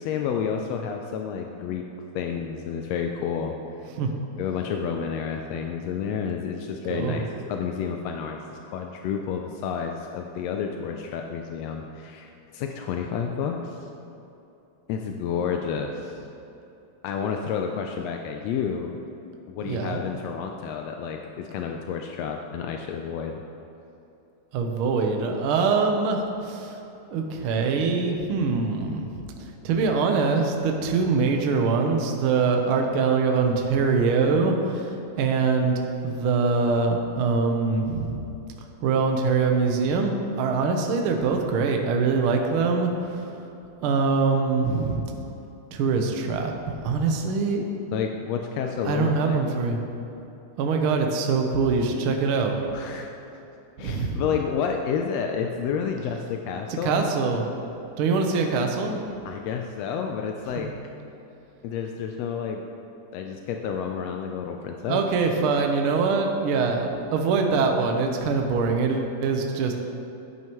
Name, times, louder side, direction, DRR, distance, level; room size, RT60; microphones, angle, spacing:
voice 1, 0.0-1.8 2.1-3.5 4.4-8.4 8.6-13.8 14.9-16.1 17.0-18.9 19.5-23.4 47.9-49.4 52.7-53.1 53.8-57.3 59.2-60.7 61.6-62.6 63.1-65.0, left 7 dB, 85° left, 3 dB, 1.5 m, -30 dB
voice 2, 6.9-7.2 19.6-20.0 24.5-26.8 27.1-29.1 29.6-38.2 38.8-43.3 43.8-45.0 45.7-46.5 46.8-47.7 48.8-49.8 50.6-52.7 53.8-54.2 56.7-57.5 58.0-58.9 60.6-60.7 64.9-69.7, right 4 dB, 75° right, 3 dB, 1.2 m, -23 dB
12.0 x 9.4 x 3.0 m, 2.9 s
omnidirectional pair, 3.5 m